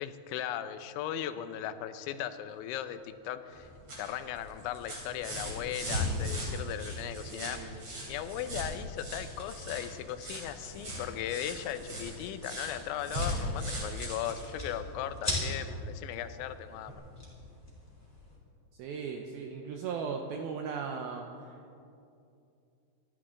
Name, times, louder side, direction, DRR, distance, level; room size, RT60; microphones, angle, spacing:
voice 1, 0.0-3.7 4.0-17.0, left 11 dB, 85° left, 10 dB, 3.1 m, -38 dB
sound 1, 3.5-15.5 16.9-17.0, equal, 35° right, 4.1 m, -38 dB
voice 2, 7.3-7.8 18.8-21.3, right 5 dB, 85° right, 3 dB, 2.2 m, -37 dB
sound 2, 11.6-18.4, left 1 dB, 5° left, 3.6 m, -41 dB
27.5 x 12.5 x 3.8 m, 2.6 s
omnidirectional pair, 5.3 m